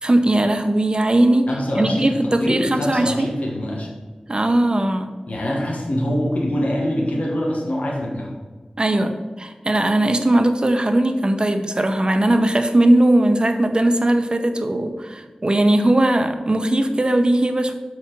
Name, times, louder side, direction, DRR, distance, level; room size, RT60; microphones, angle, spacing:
voice 1, 0.0-1.5 1.8-3.3 4.3-5.1 8.8-9.1 9.4-17.7, right 1 dB, 40° right, 7 dB, 0.7 m, -18 dB
voice 2, 1.5-3.9 5.3-8.3, equal, 80° left, -1 dB, 1.3 m, -24 dB
4.8 x 4.5 x 5.8 m, 1.4 s
wide cardioid pair, 45°, 2 cm